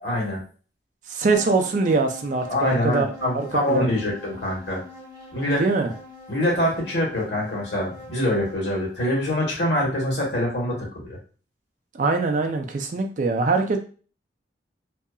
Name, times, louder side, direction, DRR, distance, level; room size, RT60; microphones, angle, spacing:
voice 1, 0.0-0.4 2.5-4.8 5.3-5.6 6.3-11.2, left 1 dB, 70° left, -4 dB, 1.3 m, -24 dB
voice 2, 1.1-3.1 3.7-4.0 5.5-5.9 11.9-13.8, right 3 dB, 45° right, 4 dB, 0.4 m, -23 dB
sound 1, 1.3-8.8, left 2 dB, 20° right, 0.8 m, -44 dB
2.7 x 2.4 x 2.3 m, 0.38 s
head